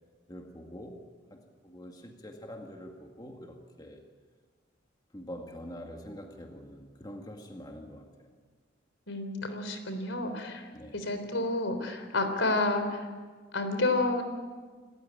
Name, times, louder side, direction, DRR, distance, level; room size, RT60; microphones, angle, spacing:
voice 1, 0.3-1.0 1.3-4.0 5.1-8.3 10.7-11.1, equal, 20° left, 2 dB, 2.0 m, -45 dB
voice 2, 9.1-10.7 10.9-13.1 13.5-14.2, left 2 dB, 80° left, 8 dB, 3.7 m, -30 dB
28.0 x 15.0 x 10.0 m, 1.5 s
head